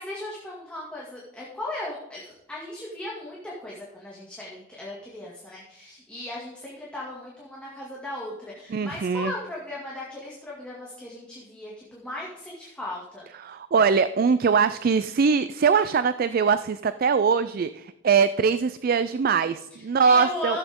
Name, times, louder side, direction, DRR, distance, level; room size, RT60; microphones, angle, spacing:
voice 1, 0.0-13.3 19.7-20.6, left 1 dB, 5° left, -6 dB, 2.1 m, -37 dB
voice 2, 8.7-9.3 13.4-20.6, right 5 dB, 45° right, 13 dB, 0.4 m, -22 dB
15.0 x 8.0 x 3.7 m, 0.88 s
head